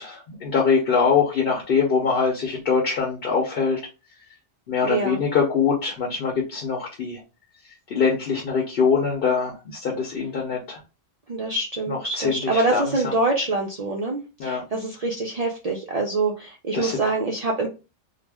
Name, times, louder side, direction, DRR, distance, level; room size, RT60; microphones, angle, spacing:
voice 1, 0.0-3.8 4.7-7.2 7.9-10.8 11.9-12.8 14.4-14.8 16.7-17.0, left 5 dB, 55° left, -1 dB, 0.8 m, -23 dB
voice 2, 4.8-5.2 11.3-17.7, right 3 dB, 60° right, -1 dB, 0.4 m, -25 dB
2.4 x 2.0 x 3.3 m, 0.30 s
omnidirectional pair, 1.2 m